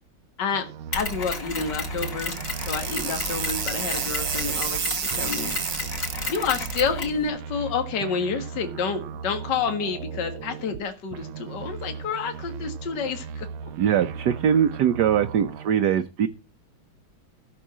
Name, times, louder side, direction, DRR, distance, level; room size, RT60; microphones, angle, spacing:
sound 1, 0.5-4.8 5.1-10.8 11.1-15.7, right 6 dB, 80° right, 1.6 m, -37 dB
voice 1, 0.9-5.5 6.3-13.5, left 5 dB, 60° left, 2.2 m, -29 dB
Mechanisms, 0.9-7.2, left 3 dB, 40° left, 3.0 m, -33 dB
sound 2, 2.2-6.8, right 7 dB, 45° right, 0.9 m, -30 dB
voice 2, 13.8-16.3, right 9 dB, 60° right, 1.3 m, -22 dB
14.5 x 6.5 x 7.5 m
omnidirectional pair, 2.2 m